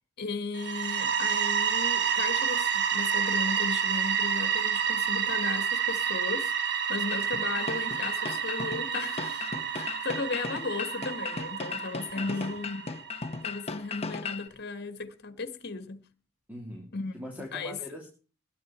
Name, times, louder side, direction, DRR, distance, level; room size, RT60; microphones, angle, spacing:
voice 1, 0.2-6.5 6.9-12.8 13.4-16.0 16.9-17.1 17.5-17.8, left 3 dB, 50° left, 1.8 m, -35 dB
sound 1, 0.5-13.3, right 7 dB, 50° right, 1.5 m, -29 dB
sound 2, 7.1-14.5, left 4 dB, 30° left, 1.2 m, -37 dB
voice 2, 12.1-12.6 16.5-18.1, equal, 5° right, 2.9 m, -42 dB
21.0 x 11.0 x 4.5 m
head